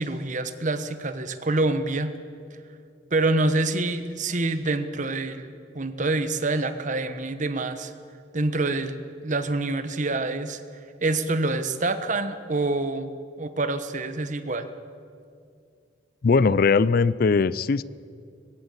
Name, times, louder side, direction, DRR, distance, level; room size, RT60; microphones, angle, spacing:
voice 1, 0.0-2.1 3.1-7.9 8.3-10.6 11.0-13.1 13.4-14.7, right 2 dB, 40° right, 10 dB, 1.1 m, -26 dB
voice 2, 16.2-17.8, left 4 dB, 50° left, 19 dB, 0.4 m, -20 dB
21.0 x 16.0 x 8.3 m, 2.3 s
head